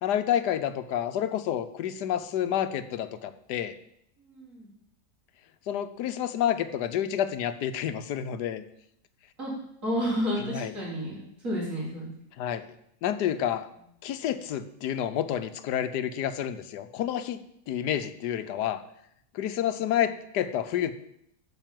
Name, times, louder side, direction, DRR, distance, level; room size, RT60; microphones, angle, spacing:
voice 1, 0.0-3.7 5.7-8.6 10.5-10.7 12.4-12.6 13.0-13.7 14.0-17.4 17.7-18.8 19.3-20.9, left 10 dB, 85° left, 11 dB, 1.3 m, -29 dB
voice 2, 4.2-4.7 9.4-9.5 9.8-11.2 11.4-12.1, equal, 50° right, -6 dB, 5.0 m, -30 dB
9.1 x 6.3 x 7.6 m, 0.76 s
omnidirectional pair, 1.7 m